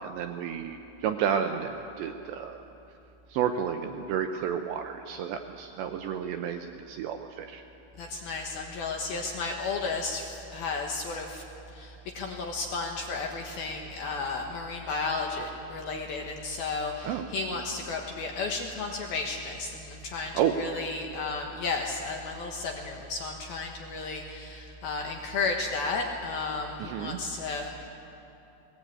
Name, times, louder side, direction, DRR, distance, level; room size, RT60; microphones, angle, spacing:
voice 1, 0.0-2.6 3.3-7.6 17.0-17.2 20.3-20.6 26.8-27.2, right 8 dB, 80° right, 6 dB, 2.6 m, -31 dB
voice 2, 8.0-11.4 11.7-27.9, left 3 dB, 65° left, 2 dB, 2.5 m, -33 dB
20.5 x 19.5 x 8.6 m, 2.9 s
omnidirectional pair, 5.9 m